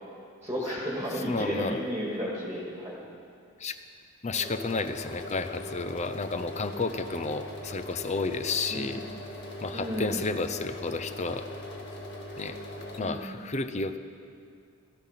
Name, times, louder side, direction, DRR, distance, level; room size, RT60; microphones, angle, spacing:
voice 1, 0.4-3.0 8.7-9.1 9.7-10.2 13.0-13.4, equal, 15° right, -4 dB, 2.0 m, -33 dB
voice 2, 1.3-1.8 3.6-3.8 4.2-9.0 9.6-11.5 12.4-12.6 13.0-14.0, left 3 dB, 30° left, 10 dB, 0.6 m, -31 dB
sound 1, 4.3-13.0, left 1 dB, 50° left, 1.9 m, -40 dB
17.0 x 14.0 x 5.8 m, 2.3 s
head